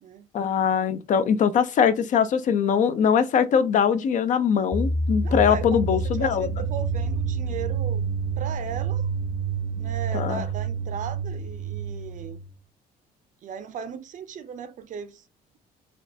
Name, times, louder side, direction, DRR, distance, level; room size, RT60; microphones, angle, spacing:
voice 1, 0.3-6.5 10.1-10.4, left 7 dB, 50° left, 0.4 m, -22 dB
sound 1, 4.7-12.5, right 4 dB, 5° right, 0.6 m, -28 dB
voice 2, 5.2-8.0 8.4-9.1 9.8-12.4 13.4-15.2, right 7 dB, 50° right, 0.5 m, -37 dB
4.2 x 2.3 x 2.7 m
cardioid pair, 110°, 17 cm